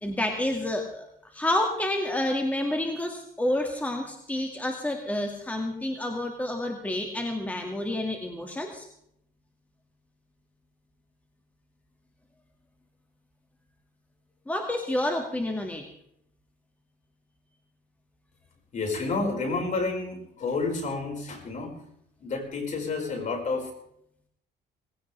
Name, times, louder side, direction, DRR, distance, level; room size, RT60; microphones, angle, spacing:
voice 1, 0.0-8.9 14.5-15.9, left 1 dB, 10° left, 3 dB, 2.1 m, -29 dB
voice 2, 18.7-21.7 22.2-23.7, left 3 dB, 45° left, 1 dB, 5.1 m, -30 dB
19.5 x 16.5 x 3.4 m, 0.73 s
cardioid pair, 110°, 17 cm